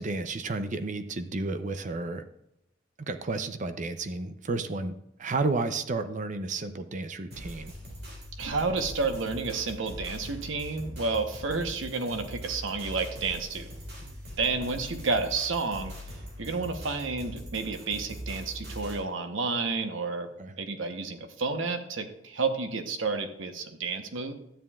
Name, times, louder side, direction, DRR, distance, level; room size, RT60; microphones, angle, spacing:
voice 1, 0.0-2.2 3.1-4.9 5.2-7.7 14.0-14.2 20.4-20.5, right 3 dB, 40° right, 9 dB, 0.6 m, -32 dB
sound 1, 7.3-19.0, equal, 55° right, 2.8 m, -42 dB
voice 2, 8.4-13.7 14.4-15.9 16.4-20.3 20.6-24.3, right 4 dB, 75° right, 7 dB, 1.0 m, -30 dB
12.5 x 9.2 x 2.4 m, 0.82 s
head